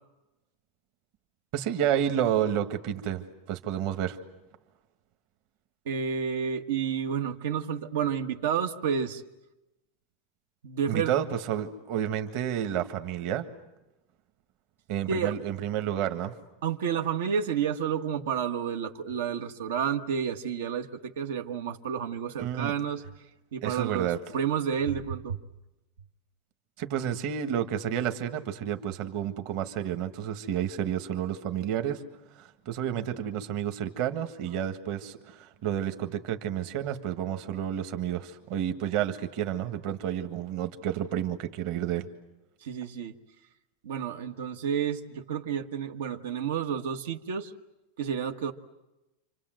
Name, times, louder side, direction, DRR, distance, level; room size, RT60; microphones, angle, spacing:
voice 1, 1.5-4.2 10.9-13.5 14.9-16.3 22.4-22.7 23.6-24.2 26.8-32.0 32.4-42.1, right 10 dB, 40° right, 7 dB, 1.6 m, -30 dB
voice 2, 5.8-9.2 10.6-11.1 15.1-15.3 16.6-23.0 23.5-25.4 42.6-43.1 43.8-47.5 48.0-48.5, right 7 dB, 75° right, 6 dB, 1.5 m, -30 dB
29.5 x 25.5 x 7.8 m, 0.99 s
supercardioid pair, 170°, 0 cm